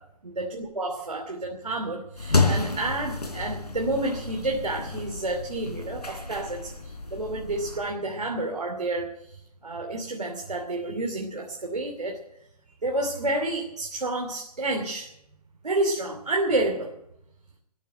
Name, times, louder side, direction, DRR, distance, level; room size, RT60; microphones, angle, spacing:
voice 1, 0.2-12.2 12.8-15.1 15.6-16.9, right 2 dB, 80° right, 1 dB, 2.9 m, -30 dB
sound 1, 2.2-7.8, left 3 dB, 85° left, 4.1 m, -30 dB
13.5 x 10.5 x 8.9 m, 0.79 s
figure-of-eight pair, 130°, 20 cm